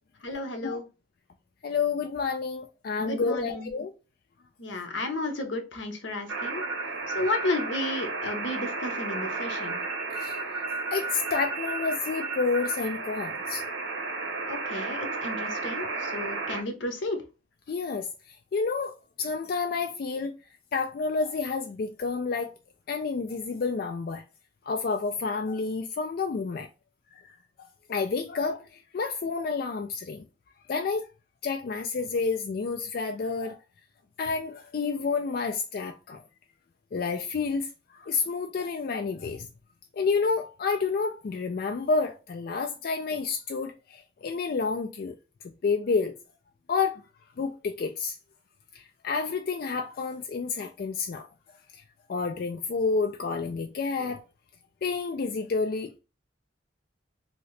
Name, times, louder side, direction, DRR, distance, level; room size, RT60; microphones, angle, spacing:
voice 1, 0.2-0.8 3.0-3.7 4.6-6.6 7.1-9.8 14.5-17.2, left 2 dB, 80° left, 0.8 m, -32 dB
voice 2, 1.6-3.9 10.1-10.4 10.9-13.6 17.7-18.9 19.2-20.3 20.7-22.5 22.9-24.2 24.7-26.7 27.1-27.4 27.9-30.2 30.7-31.1 31.4-33.6 34.2-36.2 36.9-39.5 39.9-45.2 45.6-46.1 46.7-47.0 47.4-48.2 48.7-51.3 52.1-54.2 54.8-56.0, left 4 dB, 50° left, 0.3 m, -29 dB
sound 1, 6.3-16.6, right 3 dB, 90° right, 0.8 m, -33 dB
2.9 x 2.8 x 3.1 m
head